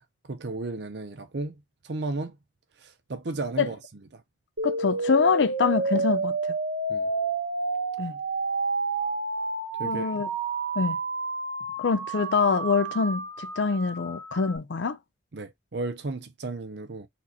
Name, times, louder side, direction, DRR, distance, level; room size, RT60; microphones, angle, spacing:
voice 1, 0.3-2.4 2.8-3.8 4.1-4.2 6.9-7.1 9.8-10.2 15.3-17.1, right 3 dB, 60° right, 0.6 m, -34 dB
voice 2, 4.6-6.5 8.0-8.2 9.8-10.3 10.8-11.0 11.8-15.0, left 5 dB, 70° left, 0.5 m, -25 dB
sound 1, 4.6-14.6, right 3 dB, 80° right, 1.1 m, -30 dB
4.3 x 2.9 x 4.0 m
head